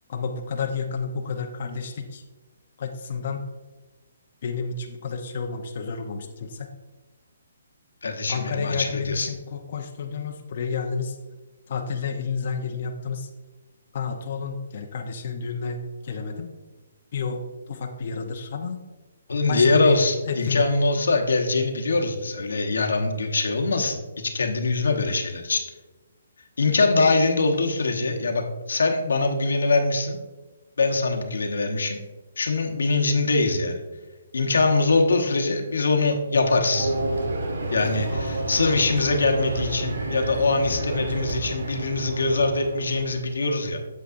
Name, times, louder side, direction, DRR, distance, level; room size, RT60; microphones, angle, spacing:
voice 1, 0.1-2.2 2.8-3.4 4.4-6.7 8.3-11.2 11.7-13.3 13.9-16.5 17.1-18.8 19.5-20.0 20.3-20.6, left 5 dB, 45° left, 2 dB, 0.7 m, -31 dB
voice 2, 8.0-9.3 19.3-25.6 26.6-30.2 30.8-32.0 32.4-33.8 34.3-36.9 37.7-43.8, left 3 dB, 90° left, 3 dB, 1.0 m, -23 dB
sound 1, 36.7-43.4, right 2 dB, 85° right, 1.5 m, -30 dB
8.2 x 7.5 x 2.6 m, 1.2 s
hypercardioid pair, 165°, 0 cm